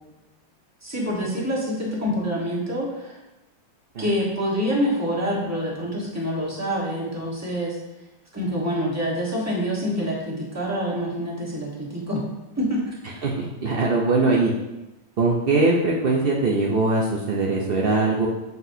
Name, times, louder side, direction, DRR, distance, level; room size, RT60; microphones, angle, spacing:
voice 1, 0.8-3.2 4.0-7.8 8.3-12.2 12.6-13.2, equal, 10° right, -4 dB, 1.1 m, -26 dB
voice 2, 13.2-14.5 15.2-18.3, right 3 dB, 75° right, -2 dB, 0.5 m, -21 dB
7.2 x 6.0 x 2.7 m, 1.0 s
omnidirectional pair, 2.0 m